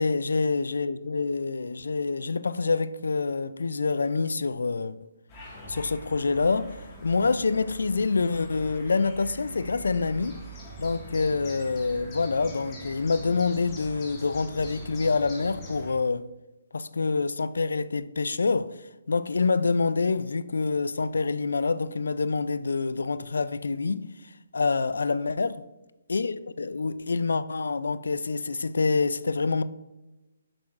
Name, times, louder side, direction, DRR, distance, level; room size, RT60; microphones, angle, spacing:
voice 1, 0.0-5.0 5.7-10.4 10.8-16.3 16.7-18.8 19.1-24.1 24.5-25.6 26.1-29.6, left 4 dB, 85° left, 0.3 m, -26 dB
sound 1, 5.3-15.9, equal, 25° left, 1.7 m, -43 dB
7.6 x 6.0 x 2.5 m
hypercardioid pair, 150°, 0 cm